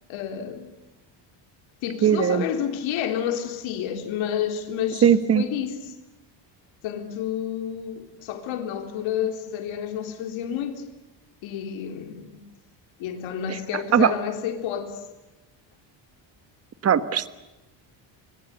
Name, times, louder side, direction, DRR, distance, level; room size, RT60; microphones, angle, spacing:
voice 1, 0.1-0.7 1.8-5.9 6.8-10.8 11.4-12.4 13.0-15.0, left 9 dB, 90° left, 3.8 m, -30 dB
voice 2, 2.0-2.4 5.0-5.4 13.5-13.6 13.9-14.1 16.8-17.3, right 8 dB, 30° right, 1.3 m, -19 dB
25.0 x 25.0 x 7.9 m
cardioid pair, 165°, 46 cm